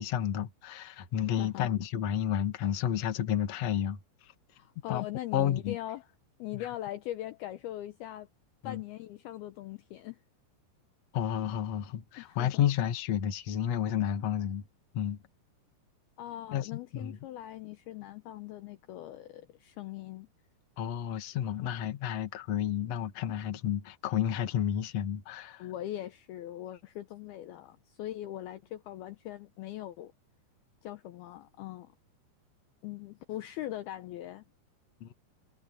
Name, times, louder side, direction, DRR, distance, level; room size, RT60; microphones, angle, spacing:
voice 1, 0.0-4.0 4.9-5.1 5.3-5.8 6.5-6.7 8.6-8.8 11.1-14.6 14.9-15.2 16.5-17.2 20.8-25.7 35.0-35.1, left 10 dB, 50° left, 2.2 m, -31 dB
voice 2, 1.4-1.7 4.5-6.1 6.4-8.3 8.6-10.2 12.2-12.6 16.2-20.3 25.6-30.1 30.8-31.9 32.8-34.4, left 13 dB, 75° left, 2.5 m, -41 dB
omnidirectional pair, 5.0 m